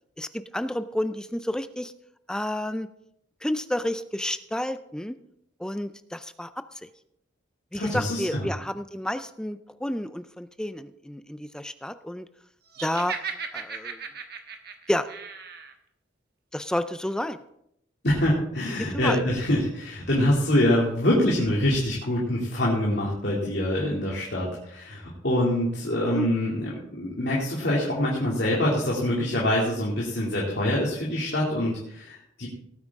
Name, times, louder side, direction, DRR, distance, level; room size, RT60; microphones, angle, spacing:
voice 1, 0.2-1.9 2.3-2.9 3.4-5.1 5.6-6.5 7.7-12.3 12.8-13.1 13.5-14.0 14.9-15.1 16.5-17.4 18.9-19.2 26.1-26.3, left 1 dB, 5° left, 11 dB, 0.4 m, -30 dB
voice 2, 7.7-8.5 18.0-32.5, left 1 dB, 60° left, -5 dB, 2.6 m, -25 dB
Laughter, 12.7-15.7, right 6 dB, 55° right, 1.3 m, -36 dB
18.0 x 9.2 x 3.6 m, 0.76 s
head